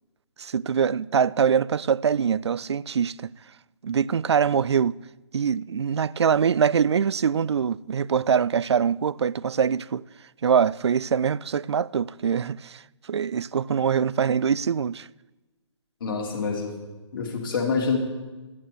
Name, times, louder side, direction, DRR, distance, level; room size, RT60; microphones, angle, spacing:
voice 1, 0.4-3.3 3.8-5.0 5.3-10.0 10.4-12.8 13.1-15.1, right 7 dB, 60° right, 0.4 m, -23 dB
voice 2, 16.0-16.8 17.1-18.0, left 5 dB, 45° left, 3.1 m, -26 dB
11.5 x 8.9 x 9.1 m
figure-of-eight pair, 140°, 15 cm